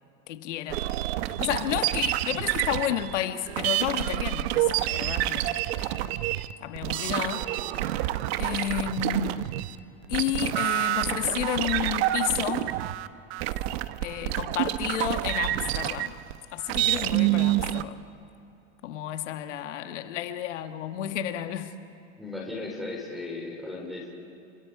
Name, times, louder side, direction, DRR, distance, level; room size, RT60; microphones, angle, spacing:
voice 1, 0.3-0.8 1.3-5.6 6.6-7.5 8.4-9.5 10.1-12.7 14.0-16.1 16.5-18.1 18.8-21.8, left 11 dB, 85° left, 7 dB, 1.7 m, -31 dB
sound 1, 0.7-9.8 10.0-17.8, right 15 dB, 60° right, 0.9 m, -28 dB
voice 2, 22.2-24.1, left 2 dB, ahead, -3 dB, 3.6 m, -36 dB
30.0 x 25.5 x 4.8 m, 2.9 s
supercardioid pair, 150°, 35 cm